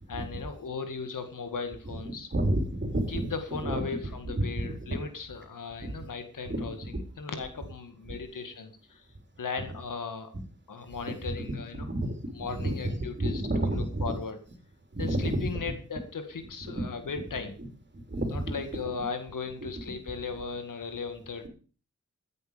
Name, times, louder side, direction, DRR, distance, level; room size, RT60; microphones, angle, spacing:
voice 1, 0.1-2.3 3.1-6.8 7.2-9.0 9.4-10.3 10.7-11.8 12.4-13.4 13.7-14.4 15.0-17.6 18.3-21.5, left 5 dB, 85° left, 8 dB, 2.1 m, -37 dB
voice 2, 1.8-3.9 4.2-5.0 5.8-5.9 6.5-7.0 10.3-10.4 10.9-12.2 12.5-14.1 14.9-15.5 16.6-16.9 17.9-19.0 19.6-20.0, right 1 dB, 35° right, 5 dB, 4.1 m, -31 dB
14.5 x 9.6 x 5.2 m, 0.39 s
cardioid pair, 50°, 31 cm